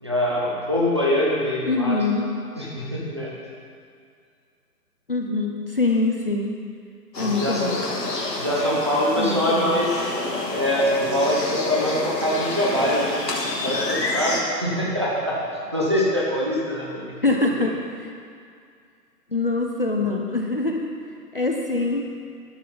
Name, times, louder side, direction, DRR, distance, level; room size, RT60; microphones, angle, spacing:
voice 1, 0.0-2.0 2.6-3.3 7.2-7.8 8.3-10.0 10.5-13.2 13.4-15.4 15.7-17.2, equal, 15° right, -5 dB, 0.8 m, -24 dB
voice 2, 1.6-2.3 5.1-6.5 7.2-7.9 9.2-9.8 17.2-18.1 19.3-20.9 21.3-22.1, left 3 dB, 35° left, 1 dB, 0.6 m, -24 dB
sound 1, 7.1-14.4, left 2 dB, 80° left, 2.8 m, -28 dB
12.5 x 11.5 x 3.9 m, 2.3 s
hypercardioid pair, 175°, 49 cm